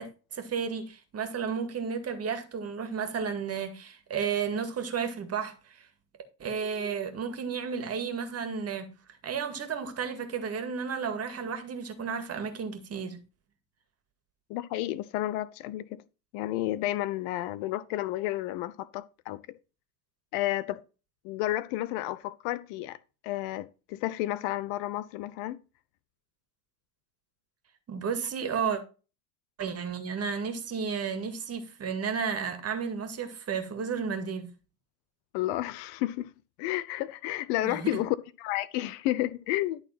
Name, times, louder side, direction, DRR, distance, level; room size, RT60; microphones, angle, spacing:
voice 1, 0.0-5.9 6.4-8.9 9.2-13.2 27.9-28.8 29.6-34.5 37.6-38.0, right 6 dB, 30° right, 2.0 m, -33 dB
voice 2, 14.5-16.0 16.3-19.4 20.3-20.8 21.2-23.0 23.2-25.6 35.3-36.3 36.6-39.8, left 15 dB, 55° left, 0.7 m, -31 dB
11.5 x 4.0 x 5.8 m
hypercardioid pair, 95°, 48 cm